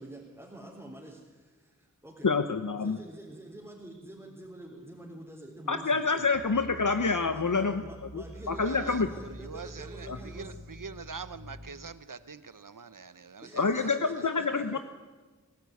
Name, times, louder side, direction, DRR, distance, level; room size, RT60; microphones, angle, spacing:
voice 1, 0.0-2.3 2.8-6.4 7.3-10.6 13.4-14.8, right 1 dB, 10° right, -4 dB, 3.8 m, -47 dB
voice 2, 2.2-3.0 5.7-7.8 8.1-9.1 10.1-10.2 13.5-14.8, left 4 dB, 70° left, 8 dB, 0.9 m, -27 dB
sound 1, 6.3-11.7, equal, 50° left, 5.5 m, -46 dB
voice 3, 8.6-9.0 9.4-13.6, right 5 dB, 80° right, 13 dB, 0.9 m, -43 dB
20.0 x 13.5 x 9.5 m, 1.3 s
wide cardioid pair, 45°, 32 cm